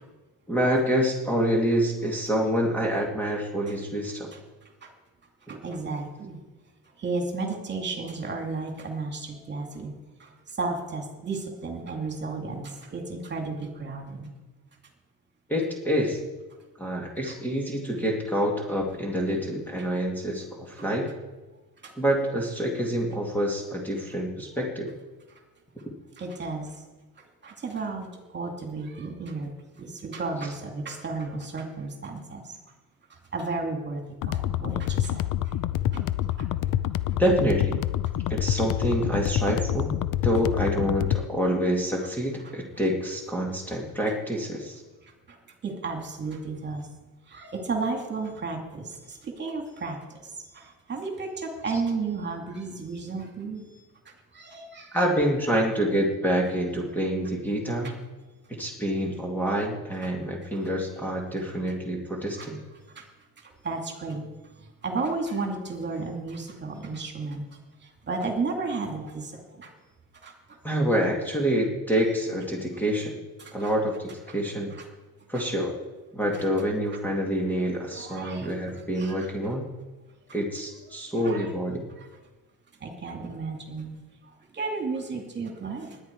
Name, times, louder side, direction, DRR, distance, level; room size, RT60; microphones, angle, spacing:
voice 1, 0.5-4.3 15.5-16.2 16.8-21.1 22.0-24.9 37.2-37.8 38.3-40.0 40.2-44.8 54.9-57.9 58.5-62.6 70.6-73.2 73.5-74.7 75.3-75.7 76.1-79.7 80.3-81.9, equal, 5° left, -1 dB, 1.9 m, -27 dB
voice 2, 4.3-4.9 5.5-6.4 7.0-14.3 17.2-17.3 19.8-19.9 20.8-20.9 21.8-22.0 25.3-25.4 26.2-26.8 27.2-32.6 33.1-35.6 35.9-36.0 36.4-36.5 42.4-42.5 45.0-46.9 47.3-55.0 55.5-55.7 57.8-57.9 60.5-60.6 62.4-62.5 62.7-63.1 63.4-64.3 64.5-69.7 70.1-70.6 73.4-73.7 74.3-74.4 74.7-74.8 75.3-75.4 76.3-76.4 77.9-78.5 78.9-79.5 81.1-81.5 82.0-82.1 82.8-84.0 84.2-86.0, right 3 dB, 30° right, 2 dB, 2.6 m, -34 dB
sound 1, 34.2-41.2, left 12 dB, 55° left, 0.7 m, -27 dB
19.5 x 10.5 x 4.7 m, 1.2 s
cardioid pair, 150°, 38 cm